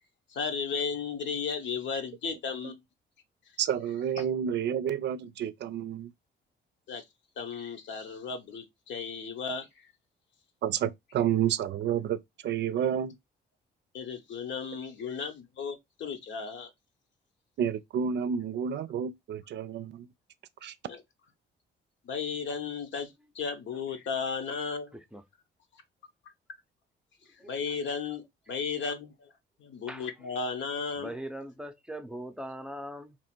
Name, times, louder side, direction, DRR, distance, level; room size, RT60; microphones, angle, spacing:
voice 1, 0.3-2.8 4.2-4.3 6.9-7.0 7.4-9.9 13.9-16.7 20.9-21.0 22.0-25.0 27.3-29.3 29.6-31.1, left 5 dB, 70° left, 1.0 m, -35 dB
voice 2, 3.6-6.1 10.6-13.1 17.6-20.1 20.6-20.7, right 9 dB, 60° right, 0.4 m, -30 dB
voice 3, 24.9-25.2 27.4-27.5 29.9-30.1 31.0-33.2, right 1 dB, 5° right, 0.6 m, -40 dB
3.0 x 2.5 x 4.3 m
cardioid pair, 90°, 20 cm